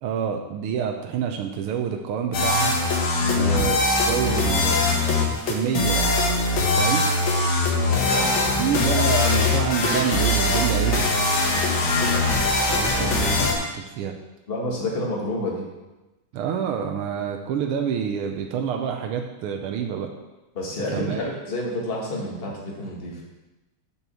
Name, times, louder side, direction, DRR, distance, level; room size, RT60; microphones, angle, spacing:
voice 1, 0.0-2.8 3.4-6.1 6.8-7.1 8.6-11.3 12.7-14.2 16.3-20.1 20.9-21.2, right 7 dB, 85° right, 3 dB, 1.7 m, -27 dB
sound 1, 2.3-13.5, left 2 dB, 65° left, 2.1 m, -21 dB
voice 2, 7.8-8.6 14.5-15.6 20.6-23.2, left 1 dB, 30° left, -3 dB, 1.9 m, -29 dB
6.9 x 6.3 x 6.9 m, 1.1 s
omnidirectional pair, 2.4 m